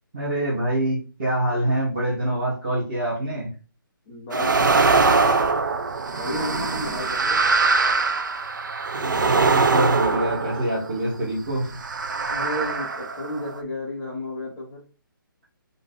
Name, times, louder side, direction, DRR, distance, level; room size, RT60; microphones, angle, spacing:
voice 1, 0.1-3.5 8.9-11.7, right 1 dB, 25° right, -9 dB, 1.5 m, -25 dB
voice 2, 4.1-5.1 6.2-7.4 12.3-14.8, left 1 dB, 5° left, -5 dB, 0.3 m, -32 dB
sound 1, 4.3-11.1 11.7-13.6, right 4 dB, 60° right, 0.5 m, -22 dB
3.6 x 2.6 x 3.9 m, 0.34 s
hypercardioid pair, 175°, 12 cm